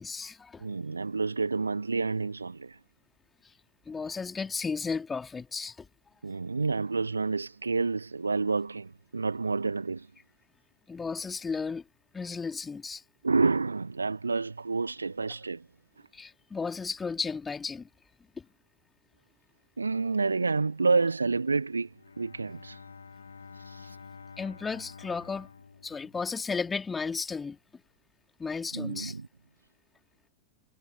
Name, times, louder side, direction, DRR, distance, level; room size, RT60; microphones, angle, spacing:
voice 1, 0.0-1.0 3.4-3.5 3.8-5.9 10.9-11.8 12.1-13.0 16.1-17.9 18.4-18.5 24.4-25.5 25.8-27.6 28.4-29.2, left 5 dB, 15° left, 3.0 m, -34 dB
voice 2, 0.6-2.8 6.2-10.1 13.2-15.7 19.8-22.9 23.5-24.0 28.7-29.3, right 4 dB, 80° right, 1.3 m, -29 dB
Bowed string instrument, 21.8-26.7, left 5 dB, 75° left, 1.9 m, -49 dB
figure-of-eight pair, 90°, 0 cm